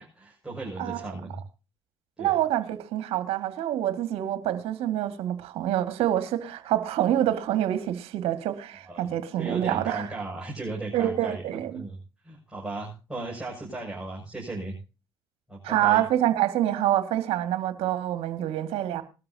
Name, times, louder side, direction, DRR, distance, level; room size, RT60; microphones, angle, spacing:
voice 1, 0.0-1.4 2.2-2.4 8.9-9.1 9.4-12.0 12.2-14.8 15.5-16.0, right 2 dB, 5° right, 6.8 m, -36 dB
voice 2, 2.2-10.1 10.9-11.8 15.6-19.0, right 12 dB, 65° right, 2.0 m, -26 dB
20.5 x 13.0 x 2.8 m
hypercardioid pair, 55°, 11 cm